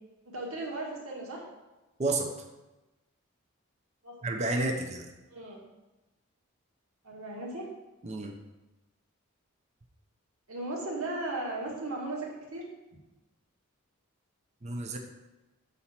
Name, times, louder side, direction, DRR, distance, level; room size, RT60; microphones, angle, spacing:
voice 1, 0.3-1.4 4.0-4.2 5.3-5.6 7.0-7.7 10.5-12.6, right 2 dB, 80° right, -2 dB, 1.8 m, -36 dB
voice 2, 2.0-2.3 4.2-5.1 8.0-8.3 14.6-15.0, right 2 dB, 30° right, 3 dB, 0.7 m, -30 dB
6.5 x 4.2 x 5.8 m, 1.1 s
head